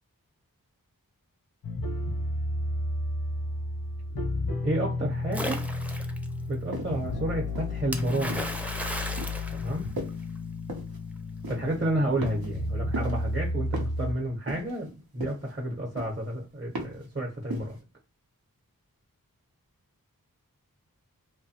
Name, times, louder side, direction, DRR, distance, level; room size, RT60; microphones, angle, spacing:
sound 1, 1.6-14.1, left 2 dB, 85° left, 0.6 m, -32 dB
voice 1, 4.6-5.6 6.5-8.4 9.5-9.9 11.5-17.8, right 1 dB, 35° right, -1 dB, 0.7 m, -31 dB
Splash splatter, 5.3-6.3 7.9-10.4, equal, 5° right, 0.4 m, -35 dB
sound 2, 6.7-7.1 7.5-8.6 9.2-9.5 10.0-10.3 10.7-11.0 11.4-11.8 12.2-12.7 12.9-13.3 13.7-14.1 14.5-14.9 15.2-15.6 16.0-16.3 16.7-17.1 17.5-17.8, right 1 dB, 90° right, 0.7 m, -37 dB
2.7 x 2.1 x 2.7 m, 0.35 s
wide cardioid pair, 45°, 35 cm